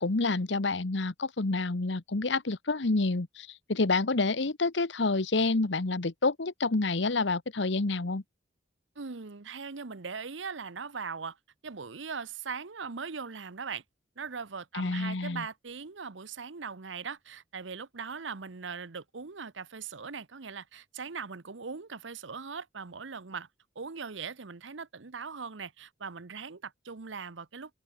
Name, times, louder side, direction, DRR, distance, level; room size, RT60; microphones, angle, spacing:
voice 1, 0.0-8.2 14.7-15.4, left 3 dB, 75° left, 1.1 m, -28 dB
voice 2, 9.0-11.4 11.6-13.8 14.2-23.5 23.7-27.8, right 5 dB, 80° right, 0.9 m, -40 dB
open air
head